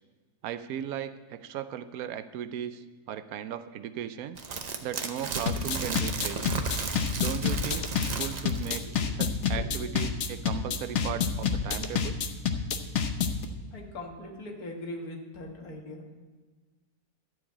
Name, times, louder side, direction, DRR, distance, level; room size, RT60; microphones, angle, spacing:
voice 1, 0.4-4.4 4.8-6.5 7.2-7.9 8.2-8.9 9.2-12.2, right 10 dB, 75° right, 12 dB, 1.0 m, -37 dB
sound 1, 4.4-8.9 9.3-9.4, right 4 dB, 45° right, 0.6 m, -34 dB
sound 2, 5.5-13.4, left 6 dB, 55° left, 1.0 m, -28 dB
voice 2, 9.5-10.0 11.0-11.1 13.7-16.0, left 1 dB, 80° left, 1 dB, 2.1 m, -41 dB
12.5 x 4.8 x 8.4 m, 1.3 s
omnidirectional pair, 1.6 m